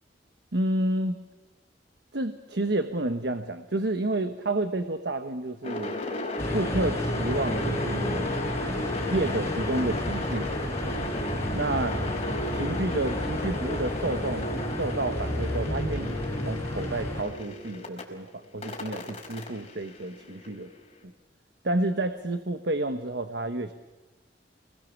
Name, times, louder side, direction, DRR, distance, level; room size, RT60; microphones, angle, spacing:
voice 1, 0.5-1.2 2.1-6.0 6.5-8.3 9.1-10.5 11.5-12.0 12.5-14.5 14.8-20.7 21.0-21.1 21.6-23.7, right 2 dB, 75° right, 8 dB, 1.2 m, -30 dB
sound 1, 5.6-18.0 18.6-20.7, left 2 dB, 35° left, 4.8 m, -34 dB
sound 2, 6.4-17.2, equal, 15° left, 5.4 m, -32 dB
28.5 x 21.0 x 7.2 m, 1.1 s
head